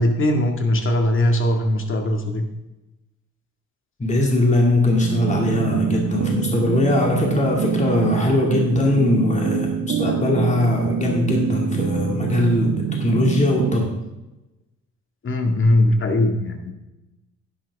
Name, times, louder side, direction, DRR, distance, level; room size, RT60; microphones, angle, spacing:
voice 1, 0.0-2.5 15.2-16.7, left 1 dB, 40° left, 4 dB, 2.1 m, -20 dB
voice 2, 4.0-13.9, left 1 dB, 25° left, 0 dB, 2.4 m, -20 dB
sound 1, 5.0-13.8, right 8 dB, 70° right, 1.3 m, -25 dB
11.0 x 10.5 x 3.6 m, 1.0 s
cardioid pair, 90°, 30 cm